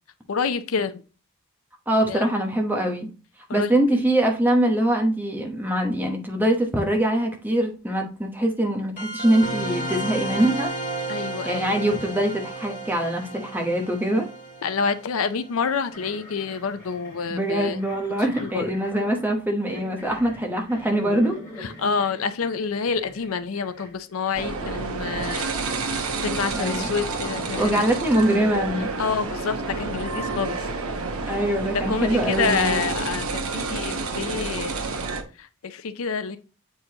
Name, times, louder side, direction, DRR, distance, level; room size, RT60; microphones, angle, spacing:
voice 1, 0.3-1.0 2.1-2.3 3.5-3.7 11.1-11.8 14.6-17.8 18.4-18.7 21.6-27.9 29.0-30.7 31.7-34.7 35.4-36.4, left 5 dB, 75° left, 0.5 m, -28 dB
voice 2, 1.9-3.1 3.5-10.7 11.4-14.3 17.3-21.3 26.5-26.9 27.5-28.9 31.3-32.8, right 1 dB, 10° right, 0.9 m, -23 dB
sound 1, 9.0-16.1, right 1 dB, 35° left, 1.6 m, -33 dB
sound 2, 15.9-24.9 25.2-30.7 31.0-31.5 32.1-32.2 33.4-33.9, equal, 15° left, 2.8 m, -45 dB
sound 3, 24.3-35.2, right 3 dB, 80° right, 0.9 m, -29 dB
7.6 x 4.7 x 2.8 m
head